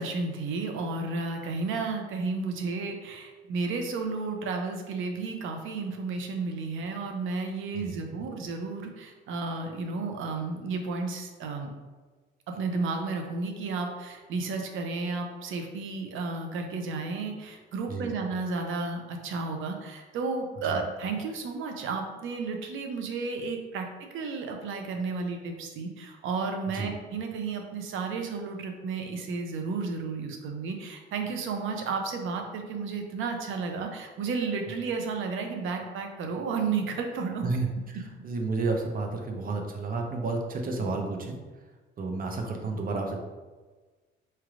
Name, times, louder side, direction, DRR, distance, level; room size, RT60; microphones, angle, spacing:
voice 1, 0.0-11.7 12.5-37.5, right 4 dB, 80° right, 4 dB, 0.6 m, -32 dB
voice 2, 7.7-8.2 17.9-18.1 20.6-20.8 26.7-26.9 37.4-41.4 42.0-43.2, right 3 dB, 45° right, 3 dB, 0.7 m, -31 dB
4.3 x 3.2 x 2.5 m, 1.3 s
cardioid pair, 90°, 20 cm